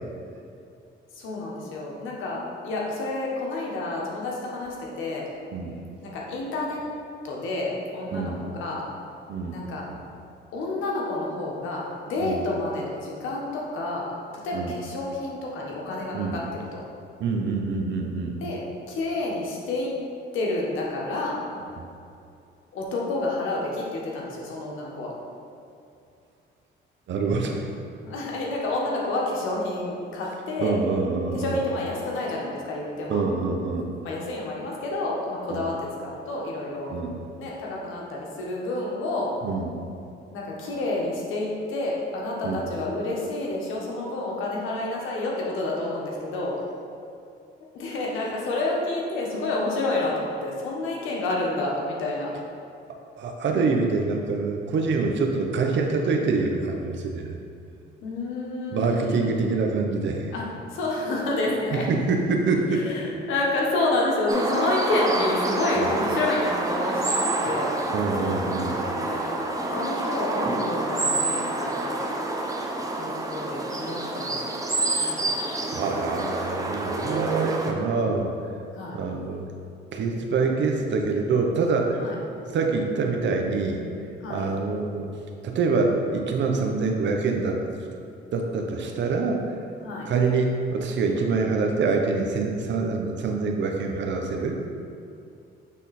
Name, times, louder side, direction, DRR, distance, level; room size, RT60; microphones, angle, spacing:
voice 1, 1.1-5.2 6.0-6.8 7.2-8.8 9.5-9.9 10.5-14.1 14.4-16.4 16.7-16.8 18.4-18.6 18.9-19.9 20.3-21.4 22.7-25.1 28.0-30.8 31.3-33.2 34.0-35.8 36.0-36.9 37.4-39.3 40.3-46.5 47.7-52.3 58.0-59.3 60.3-60.4 60.7-61.9 62.7-63.0 63.3-67.7 68.7-72.0 73.0-74.5 75.0-75.3 78.7-79.0 82.0-82.1 84.2-84.5 89.8-90.1, left 2 dB, 85° left, -3 dB, 1.3 m, -29 dB
voice 2, 17.2-18.4 21.8-21.9 27.1-27.6 30.6-31.6 33.1-33.9 35.5-35.6 36.9-37.2 39.4-39.7 42.4-42.6 53.2-57.4 58.7-60.3 61.7-62.9 65.8-66.0 67.9-68.8 74.9-75.1 75.5-78.3 78.9-79.5 79.9-82.0 82.5-83.8 84.3-85.1 85.4-87.6 88.3-89.4 90.0-94.6, right 4 dB, 65° right, 2 dB, 0.8 m, -25 dB
sound 1, 64.3-77.7, right 2 dB, 15° right, 0.8 m, -28 dB
8.4 x 3.6 x 4.2 m, 2.5 s
cardioid pair, 90°, 20 cm